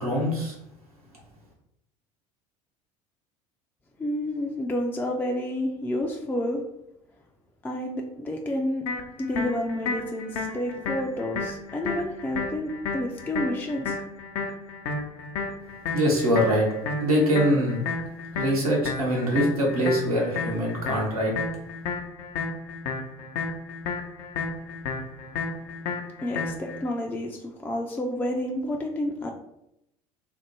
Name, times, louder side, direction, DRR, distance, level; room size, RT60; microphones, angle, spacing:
voice 1, 0.0-0.5 15.9-16.7 17.0-17.8 18.3-21.3, equal, 85° right, -3 dB, 1.0 m, -23 dB
voice 2, 4.0-6.6 7.6-8.8 9.2-14.0 26.2-29.3, left 1 dB, 10° left, 1 dB, 0.4 m, -30 dB
sound 1, 8.9-26.8, left 4 dB, 55° left, 0.6 m, -33 dB
3.3 x 2.0 x 3.0 m, 0.79 s
figure-of-eight pair, 65°, 18 cm